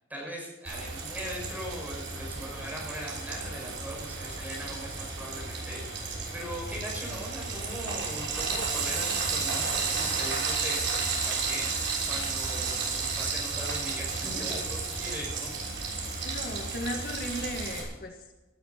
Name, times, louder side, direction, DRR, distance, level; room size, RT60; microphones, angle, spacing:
voice 1, 0.1-15.9, equal, 10° right, -2 dB, 6.8 m, -40 dB
Frying (food), 0.6-17.8, right 4 dB, 85° right, 6.3 m, -32 dB
voice 2, 16.2-18.4, left 1 dB, 50° left, 3 dB, 1.6 m, -36 dB
18.5 x 13.5 x 4.4 m, 1.1 s
head